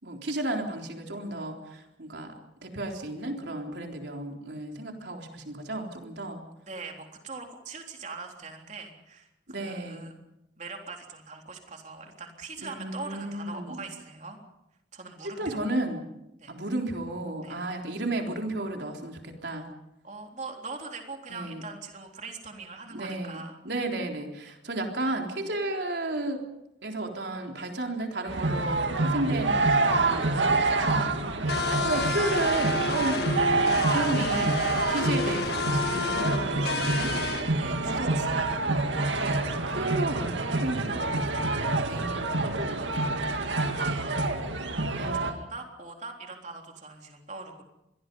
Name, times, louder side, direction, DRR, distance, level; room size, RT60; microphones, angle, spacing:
voice 1, 0.0-2.3 2.6-6.4 9.5-10.2 12.6-13.8 15.4-16.1 16.5-19.7 21.3-21.6 22.9-26.4 26.8-37.1 37.8-38.2 39.2-43.6 44.9-45.3, right 2 dB, 70° right, 2 dB, 3.8 m, -33 dB
voice 2, 6.7-9.3 9.6-10.1 10.6-14.4 14.9-15.6 16.4-16.5 17.4-17.6 20.0-23.5 31.4-31.6 33.2-34.0 37.2-38.6 43.1-43.3 43.7-47.6, right 3 dB, 40° right, 2 dB, 3.7 m, -42 dB
sound 1, 28.3-45.3, right 3 dB, 85° right, 2.1 m, -27 dB
sound 2, 31.5-37.4, left 4 dB, 60° left, 1.8 m, -31 dB
26.5 x 22.0 x 5.5 m, 0.88 s
head